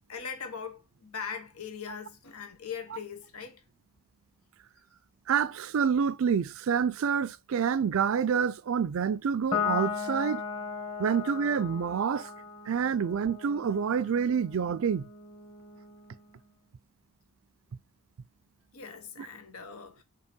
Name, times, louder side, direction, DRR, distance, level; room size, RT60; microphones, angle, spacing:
voice 1, 0.1-3.6 18.7-20.0, left 6 dB, 80° left, 1.1 m, -40 dB
voice 2, 5.3-10.4 11.0-12.3 12.7-15.1, right 7 dB, 65° right, 0.4 m, -27 dB
Piano, 9.5-16.2, left 6 dB, 25° left, 1.7 m, -37 dB
5.4 x 4.7 x 5.1 m
head